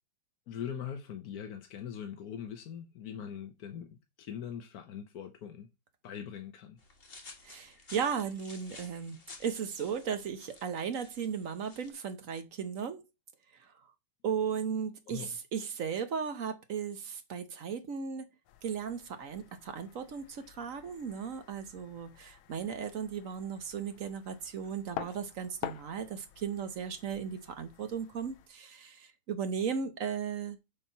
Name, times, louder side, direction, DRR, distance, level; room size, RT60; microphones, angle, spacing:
voice 1, 0.5-5.7 6.0-6.8 15.1-15.3, left 8 dB, 60° left, 1.0 m, -42 dB
sound 1, 6.8-11.9, left 3 dB, 30° left, 1.4 m, -53 dB
voice 2, 7.4-13.0 14.2-18.3 18.6-30.6, right 7 dB, 60° right, 0.9 m, -36 dB
sound 2, 18.4-28.5, left 11 dB, 75° left, 1.4 m, -48 dB
7.3 x 4.4 x 5.5 m
omnidirectional pair, 2.4 m